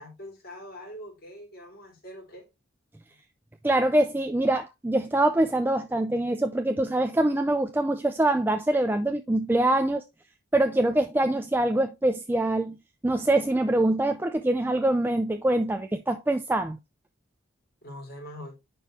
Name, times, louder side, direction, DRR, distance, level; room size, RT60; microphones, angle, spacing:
voice 1, 0.0-2.4 3.1-3.2 17.8-18.6, equal, 45° left, 3.8 m, -43 dB
voice 2, 3.6-10.0 10.5-12.8 13.0-16.8, right 1 dB, 10° right, 0.3 m, -24 dB
10.5 x 4.6 x 3.2 m
head